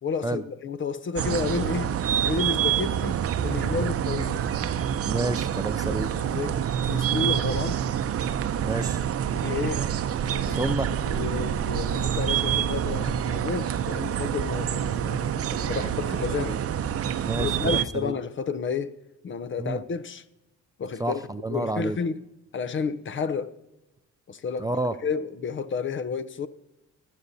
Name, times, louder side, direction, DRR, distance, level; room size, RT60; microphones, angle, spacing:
voice 1, 0.0-4.4 5.8-7.8 9.3-9.9 10.3-10.7 11.0-16.6 17.3-19.0 19.2-20.2 20.8-21.2 21.5-22.3 22.5-23.6 24.3-26.5, left 5 dB, 40° left, 0.6 m, -31 dB
sound 1, 1.2-17.8, right 9 dB, 50° right, 0.6 m, -27 dB
voice 2, 5.0-6.1 7.1-7.3 8.6-9.0 10.5-10.9 17.2-18.1 19.6-19.8 21.0-22.0 24.6-24.9, right 2 dB, 15° right, 0.3 m, -29 dB
20.5 x 8.2 x 2.7 m
cardioid pair, 90°, 30 cm